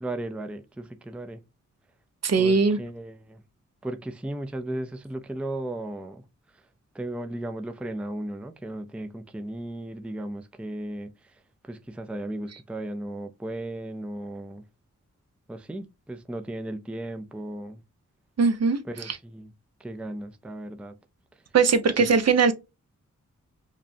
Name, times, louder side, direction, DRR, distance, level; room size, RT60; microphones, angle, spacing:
voice 1, 0.0-1.4 2.4-3.4 3.8-6.2 6.9-11.1 11.6-14.6 15.5-17.8 18.9-19.5 19.8-20.9 22.0-22.1, right 1 dB, 5° right, 0.4 m, -35 dB
voice 2, 2.2-2.8 18.4-18.8 19.1-19.2 21.5-22.5, right 5 dB, 55° right, 0.7 m, -20 dB
5.0 x 2.2 x 2.7 m
wide cardioid pair, 90°, 30 cm